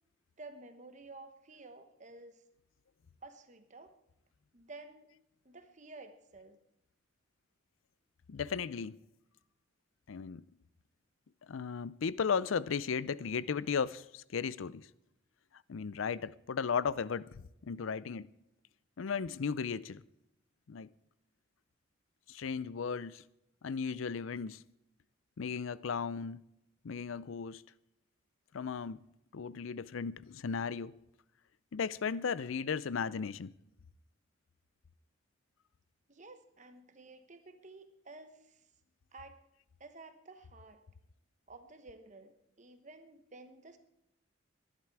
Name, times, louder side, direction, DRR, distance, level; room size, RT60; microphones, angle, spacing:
voice 1, 0.4-2.4 3.2-3.9 4.5-5.1 5.4-6.6 36.1-38.6 39.1-39.4 39.8-40.8 41.5-43.8, right 3 dB, 35° right, 1.1 m, -52 dB
voice 2, 8.3-9.0 10.1-10.4 11.5-14.9 15.7-18.3 19.0-20.0 20.7-20.9 22.3-23.2 23.6-24.6 25.4-26.4 26.8-27.6 28.5-29.0 29.3-30.9 31.7-33.5, left 6 dB, 75° left, 0.5 m, -35 dB
21.0 x 11.0 x 4.7 m
head